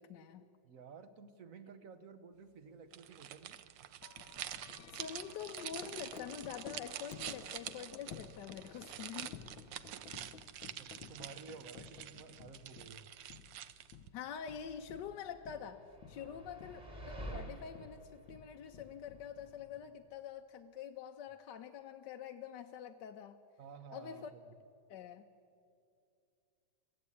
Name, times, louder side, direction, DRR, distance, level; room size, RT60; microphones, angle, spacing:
voice 1, 0.0-0.4 4.9-9.4 14.1-15.8 16.1-23.4 23.9-24.3 24.9-25.2, left 8 dB, 70° left, 5 dB, 1.3 m, -46 dB
voice 2, 0.6-3.6 10.2-10.3 10.8-13.1 16.1-16.5 23.6-24.4, right 5 dB, 50° right, 10 dB, 1.3 m, -53 dB
sound 1, 2.9-14.1, right 11 dB, 75° right, 1.4 m, -47 dB
Wind chime, 4.0-20.2, left 7 dB, 90° left, 1.6 m, -54 dB
sound 2, 14.6-19.5, right 1 dB, 20° right, 2.3 m, -49 dB
23.0 x 15.0 x 8.6 m, 2.4 s
omnidirectional pair, 2.1 m